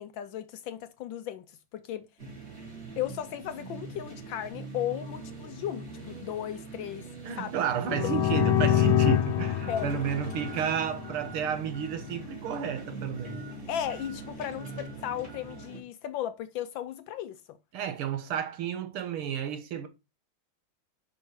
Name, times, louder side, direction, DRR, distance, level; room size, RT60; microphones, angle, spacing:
voice 1, 0.0-1.5 1.7-2.1 3.0-7.1 7.4-7.5 7.9-8.0 9.7-9.9 13.7-17.6, left 10 dB, 75° left, 1.2 m, -35 dB
sound 1, 2.2-15.8, right 3 dB, 30° right, 3.1 m, -43 dB
voice 2, 7.2-13.4 17.7-19.9, right 8 dB, 80° right, 1.9 m, -32 dB
sound 2, 7.8-11.5, left 11 dB, 90° left, 1.6 m, -26 dB
5.7 x 5.4 x 4.7 m
omnidirectional pair, 2.4 m